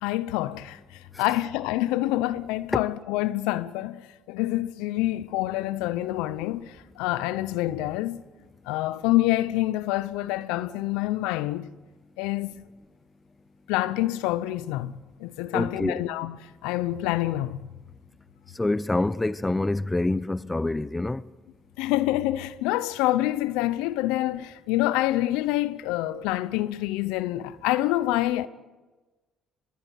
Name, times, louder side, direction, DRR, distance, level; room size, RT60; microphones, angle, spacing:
voice 1, 0.0-8.2 8.7-11.7 12.2-12.5 13.7-14.9 15.2-16.4 16.6-17.6 21.8-28.5, left 16 dB, 85° left, 0.8 m, -27 dB
voice 2, 15.5-16.0 18.6-21.2, left 2 dB, 15° left, 0.8 m, -26 dB
22.5 x 22.0 x 8.2 m
hypercardioid pair, 60°, 0 cm